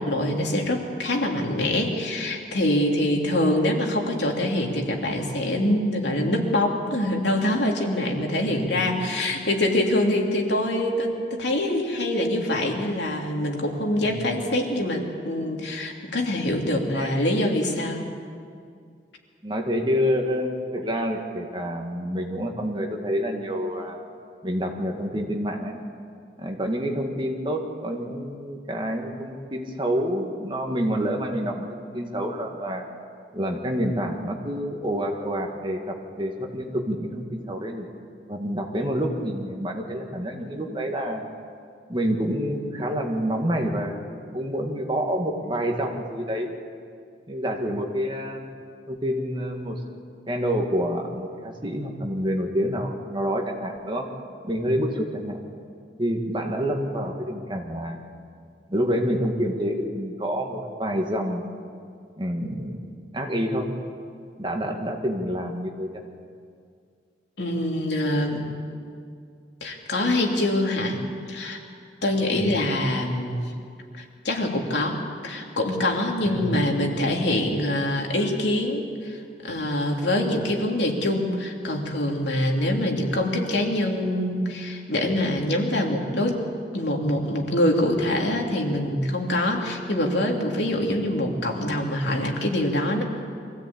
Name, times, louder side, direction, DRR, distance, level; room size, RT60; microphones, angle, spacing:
voice 1, 0.0-18.0 67.4-68.5 69.6-71.0 71.3-71.6 72.0-73.4 74.0-86.4 86.7-93.0, left 1 dB, 80° left, 1 dB, 3.0 m, -24 dB
voice 2, 8.4-8.9 9.3-9.5 14.0-14.1 16.7-17.1 19.4-24.0 24.4-25.8 26.4-32.9 33.3-37.9 38.3-41.3 41.9-43.9 44.3-46.5 47.3-48.5 48.9-49.8 50.3-54.1 54.4-55.4 56.0-58.0 58.7-61.5 62.2-62.9 63.1-63.7 64.4-66.0 72.3-72.6 76.2-76.7, equal, 25° right, 2 dB, 2.0 m, -28 dB
24.0 x 16.0 x 8.7 m, 2.2 s
head